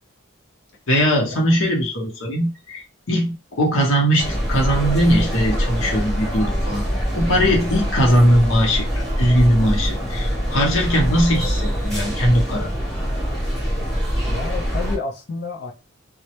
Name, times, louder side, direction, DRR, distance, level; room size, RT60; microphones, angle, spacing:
voice 1, 0.9-6.8 7.1-8.9 9.2-12.7, equal, 75° left, 0.8 m, -19 dB
sound 1, 4.2-15.0, equal, 5° left, 0.9 m, -24 dB
voice 2, 14.3-15.7, left 4 dB, 50° left, 0.4 m, -30 dB
2.1 x 2.0 x 2.9 m
head